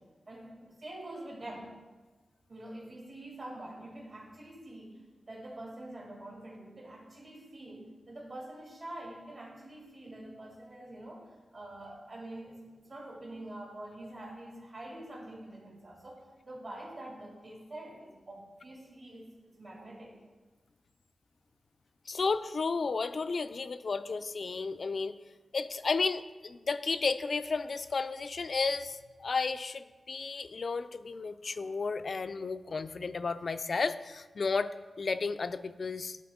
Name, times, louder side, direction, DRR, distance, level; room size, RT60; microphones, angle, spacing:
voice 1, 0.0-1.7 2.5-20.2, right 1 dB, 55° right, -4 dB, 2.5 m, -46 dB
voice 2, 22.1-25.1 25.5-34.7 35.0-36.2, left 4 dB, 60° left, 12 dB, 0.3 m, -33 dB
12.0 x 4.2 x 3.6 m, 1.3 s
wide cardioid pair, 80°, 0 cm